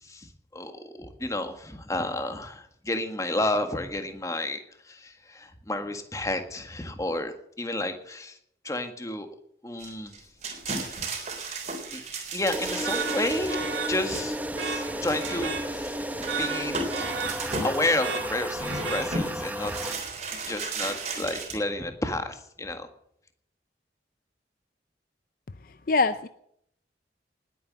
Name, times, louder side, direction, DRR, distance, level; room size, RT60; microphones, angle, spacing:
voice 1, 0.0-8.4 8.6-9.3 9.6-10.1 10.8-11.0 11.9-12.0 12.3-13.6 13.9-16.9 17.4-19.9 20.5-22.9, left 1 dB, 15° left, 7 dB, 1.7 m, -31 dB
sound 1, 9.8-14.5 15.0-15.5 15.8-15.9 16.2-17.8 18.5-19.3 19.6-21.5, right 3 dB, 40° right, 3.7 m, -35 dB
sound 2, 12.5-19.9, right 1 dB, 10° right, 0.9 m, -33 dB
sound 3, 12.8-19.6, right 5 dB, 85° right, 2.7 m, -35 dB
voice 2, 25.6-26.3, left 3 dB, 50° left, 12 dB, 0.6 m, -24 dB
19.5 x 9.4 x 7.5 m, 0.72 s
head